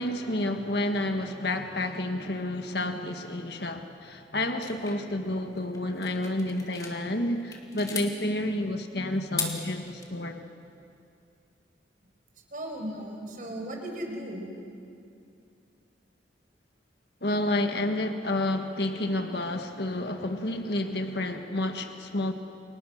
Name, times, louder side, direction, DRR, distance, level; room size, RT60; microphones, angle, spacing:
voice 1, 0.0-10.4 17.2-22.3, left 1 dB, 60° left, 5 dB, 1.6 m, -30 dB
sound 1, 4.6-7.0 7.4-8.1 9.2-10.1, left 4 dB, 20° left, 2.7 m, -37 dB
voice 2, 12.5-14.4, right 1 dB, 45° right, 2 dB, 5.4 m, -37 dB
30.0 x 28.5 x 6.6 m, 2.5 s
head